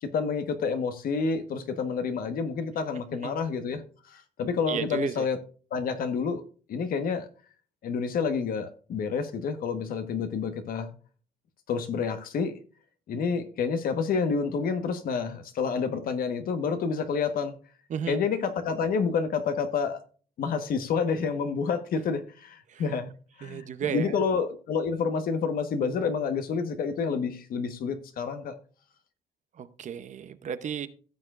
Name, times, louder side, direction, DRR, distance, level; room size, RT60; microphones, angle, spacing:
voice 1, 0.0-3.8 4.1-5.4 5.7-6.4 6.7-7.2 7.8-10.9 11.7-12.5 13.1-17.5 18.1-20.0 20.4-23.1 23.4-28.5, left 5 dB, 60° left, 1.3 m, -29 dB
voice 2, 4.7-5.3 17.9-18.2 22.7-22.8 23.4-24.2 29.6-30.9, right 8 dB, 45° right, 0.8 m, -33 dB
16.0 x 6.8 x 2.5 m
cardioid pair, 110°, 17 cm